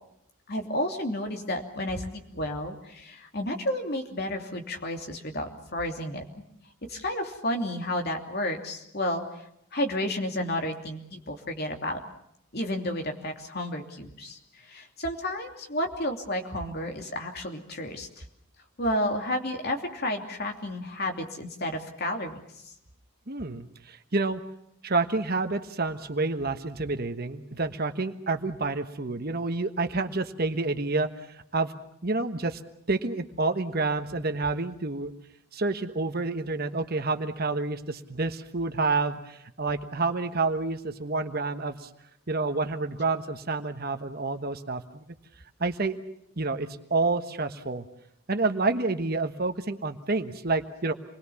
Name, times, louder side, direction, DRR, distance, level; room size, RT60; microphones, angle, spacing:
voice 1, 0.5-6.3 6.9-9.2 9.7-12.0 12.5-18.1 18.8-22.4, left 1 dB, 45° left, 4 dB, 2.9 m, -31 dB
voice 2, 23.3-24.4 24.8-31.7 32.0-32.6 32.9-35.1 35.5-41.9 42.3-45.1 45.6-46.0 46.4-47.8 48.3-50.9, right 3 dB, 45° right, 8 dB, 1.3 m, -29 dB
27.5 x 21.0 x 7.1 m, 0.77 s
head